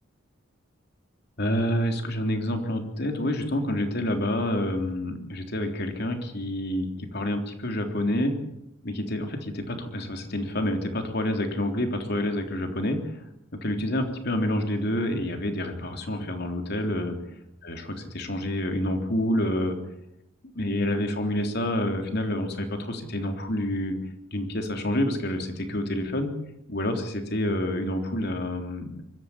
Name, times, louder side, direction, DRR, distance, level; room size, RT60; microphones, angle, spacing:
voice 1, 1.4-8.4 8.8-13.1 13.6-17.2 17.6-19.8 20.5-23.9 24.3-26.3 26.7-29.0, left 1 dB, 55° left, 5 dB, 3.5 m, -28 dB
24.0 x 13.5 x 9.9 m, 0.79 s
head